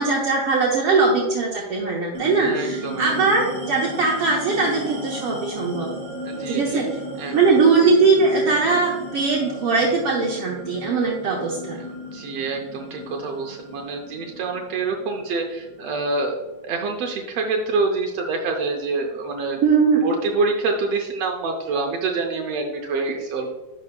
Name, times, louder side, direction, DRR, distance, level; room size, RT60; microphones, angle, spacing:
voice 1, 0.0-5.9 6.5-6.9 7.3-11.8 19.6-20.0, right 4 dB, 70° right, -3 dB, 1.4 m, -20 dB
sound 1, 2.1-17.0, equal, 25° right, 1.9 m, -36 dB
voice 2, 2.4-3.3 6.2-6.8 7.2-7.6 11.8-19.6 20.0-23.5, right 3 dB, 85° right, 2 dB, 1.4 m, -26 dB
11.0 x 5.3 x 2.2 m, 1.2 s
omnidirectional pair, 3.7 m